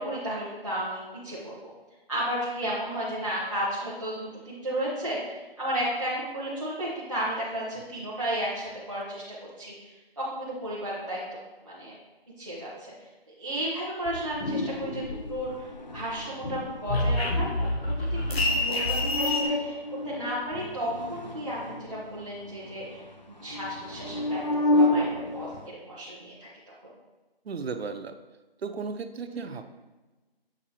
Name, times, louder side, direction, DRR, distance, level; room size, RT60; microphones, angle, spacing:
voice 1, 0.0-1.7 2.1-9.9 10.2-11.2 11.7-12.0 12.4-12.9 13.4-17.5 17.8-19.8 20.0-23.0 23.4-25.0 25.3-26.5 29.3-29.5, right 1 dB, 30° right, -10 dB, 0.8 m, -33 dB
sound 1, 14.1-15.8 16.1-19.5, left 2 dB, 85° left, 0.9 m, -28 dB
sound 2, 14.4-15.0 15.5-16.9 18.0-25.7, left 2 dB, 50° left, 0.4 m, -30 dB
voice 2, 27.5-28.1 28.6-29.7, right 5 dB, 85° right, 9 dB, 0.5 m, -35 dB
7.1 x 2.5 x 2.8 m, 1.2 s
figure-of-eight pair, 170°, 30 cm